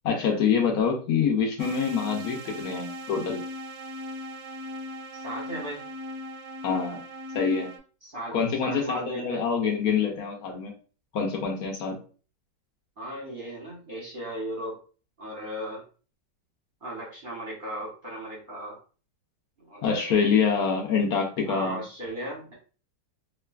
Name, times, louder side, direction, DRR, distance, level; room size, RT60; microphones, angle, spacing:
voice 1, 0.0-3.4 6.6-7.0 7.3-7.7 8.3-10.7 11.1-12.0 19.8-21.8, left 6 dB, 70° left, 1 dB, 1.1 m, -25 dB
sound 1, 1.6-7.8, left 1 dB, 70° right, 1.0 m, -38 dB
voice 2, 5.1-5.8 8.0-9.4 13.0-14.8 15.2-15.8 16.8-18.8 19.6-20.6 21.5-22.5, right 1 dB, 40° right, -4 dB, 0.8 m, -36 dB
3.0 x 2.4 x 2.3 m, 0.38 s
omnidirectional pair, 1.9 m